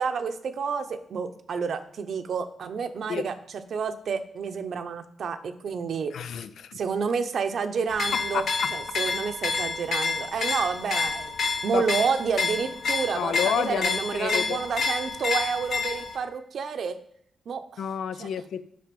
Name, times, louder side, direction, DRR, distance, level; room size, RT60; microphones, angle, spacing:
voice 1, 0.0-3.3 3.7-6.1 6.7-8.4 8.7-11.3 11.6-17.0 17.5-17.8 18.2-18.3, right 5 dB, 60° right, 0.8 m, -29 dB
voice 2, 6.1-6.8 8.1-8.7 11.5-11.9 13.1-14.6 17.8-18.7, left 8 dB, 90° left, 0.5 m, -30 dB
sound 1, 7.9-16.2, left 4 dB, 65° left, 1.1 m, -29 dB
7.7 x 5.8 x 5.2 m
wide cardioid pair, 135°, 0 cm